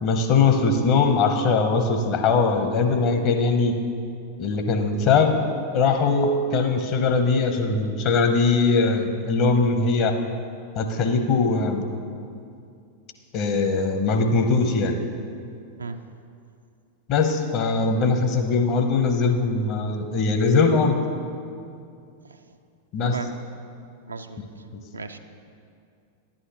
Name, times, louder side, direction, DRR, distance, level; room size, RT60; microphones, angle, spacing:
voice 1, 0.0-3.8 4.4-5.3 5.7-10.1 10.7-11.8 13.3-15.0 17.1-20.9 22.9-23.1, left 4 dB, 40° left, 5 dB, 0.8 m, -21 dB
voice 2, 22.2-22.6 23.0-23.3 24.1-24.4 24.9-25.2, right 3 dB, 75° right, 7 dB, 0.4 m, -35 dB
11.0 x 8.7 x 3.0 m, 2.4 s
figure-of-eight pair, 90°, 0 cm